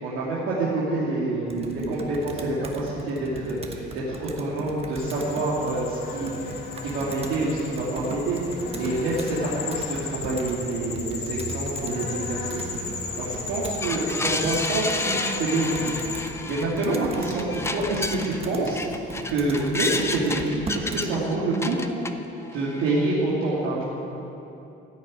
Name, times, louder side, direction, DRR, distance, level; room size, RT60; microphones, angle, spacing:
voice 1, 0.0-6.6 6.8-12.7 13.2-18.8 19.3-21.8 22.5-23.8, right 2 dB, 85° right, -8 dB, 2.7 m, -27 dB
Computer keyboard, 1.5-21.1, right 2 dB, 30° right, 1.2 m, -39 dB
sound 1, 5.0-16.2, left 4 dB, 50° left, 1.7 m, -35 dB
sound 2, 13.8-18.4 18.7-22.1 22.5-23.1, left 3 dB, 10° left, 0.6 m, -31 dB
15.5 x 6.7 x 9.2 m, 3.0 s
cardioid pair, 140°, 21 cm